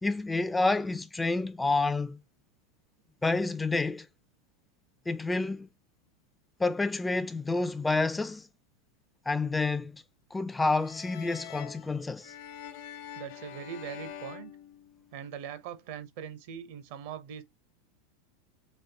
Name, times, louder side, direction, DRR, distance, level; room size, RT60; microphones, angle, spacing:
voice 1, 0.0-2.2 3.2-4.1 5.1-5.7 6.6-8.5 9.3-10.0 10.3-12.3, left 3 dB, 10° left, 0.3 m, -29 dB
sound 1, 10.8-15.4, left 10 dB, 60° left, 0.8 m, -45 dB
voice 2, 13.1-14.5 15.1-17.4, right 8 dB, 60° right, 0.7 m, -41 dB
4.3 x 3.1 x 2.7 m
hypercardioid pair, 90°, 0 cm